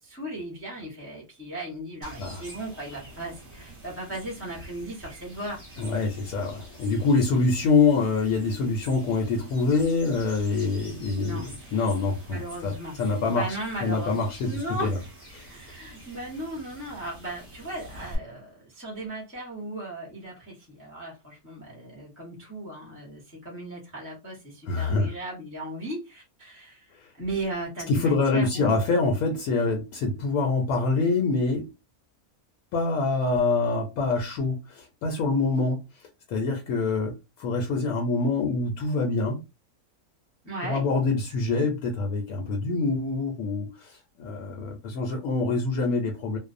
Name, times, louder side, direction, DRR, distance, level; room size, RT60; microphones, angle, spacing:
voice 1, 0.0-5.6 11.1-11.8 12.3-13.0 13.2-15.0 15.5-28.8 40.4-40.8, right 1 dB, 10° left, 0.7 m, -36 dB
sound 1, 2.0-18.2, right 1 dB, 20° right, 0.9 m, -47 dB
voice 2, 5.8-13.5 13.8-14.9 15.3-15.5 24.7-25.1 27.0-27.1 27.9-31.7 32.7-35.8 36.3-37.1 37.4-39.4 40.6-46.4, left 3 dB, 75° left, 1.0 m, -25 dB
2.5 x 2.1 x 2.4 m
omnidirectional pair, 1.6 m